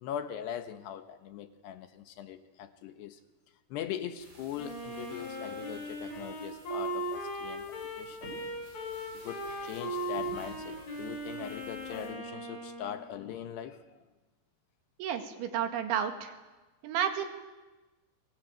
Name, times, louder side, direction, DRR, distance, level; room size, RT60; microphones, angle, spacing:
voice 1, 0.0-3.2 3.7-8.2 9.2-14.0, left 10 dB, 70° left, 9 dB, 3.0 m, -41 dB
sound 1, 4.2-12.1, right 1 dB, 30° right, 9.0 m, -54 dB
Wind instrument woodwind instrument, 4.6-13.1, right 1 dB, 90° left, 8.1 m, -38 dB
voice 2, 15.0-16.3 16.8-17.3, right 9 dB, 80° right, 6 dB, 4.5 m, -31 dB
29.5 x 22.0 x 9.1 m, 1.2 s
omnidirectional pair, 5.3 m